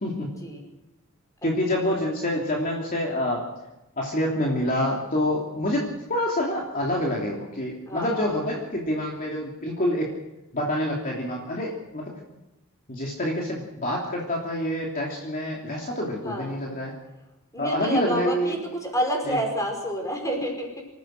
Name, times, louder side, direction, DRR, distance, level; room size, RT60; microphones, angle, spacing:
voice 1, 1.4-3.5 4.0-10.1 10.5-12.2 12.9-16.9 17.6-18.6 19.3-19.4, left 1 dB, 40° left, -2 dB, 3.1 m, -27 dB
voice 2, 7.9-8.4 16.2-16.6 17.5-20.8, equal, 15° left, 2 dB, 5.4 m, -29 dB
26.0 x 15.0 x 6.6 m, 0.98 s
head